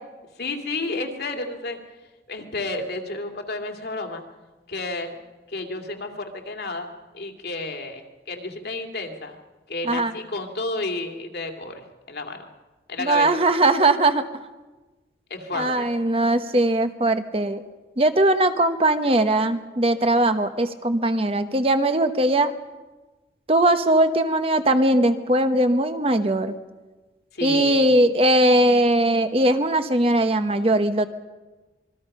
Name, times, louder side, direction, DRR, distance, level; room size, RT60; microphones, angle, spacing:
voice 1, 0.4-1.8 2.3-4.2 4.7-5.2 5.5-6.9 7.1-9.4 9.7-12.5 12.9-13.3 15.3-15.9 27.3-27.9, left 2 dB, 65° left, 5 dB, 2.4 m, -31 dB
voice 2, 13.0-14.2 15.5-17.6 18.0-22.5 23.5-26.5 27.4-31.1, right 1 dB, 30° right, 9 dB, 1.0 m, -20 dB
26.5 x 22.0 x 5.5 m, 1.2 s
head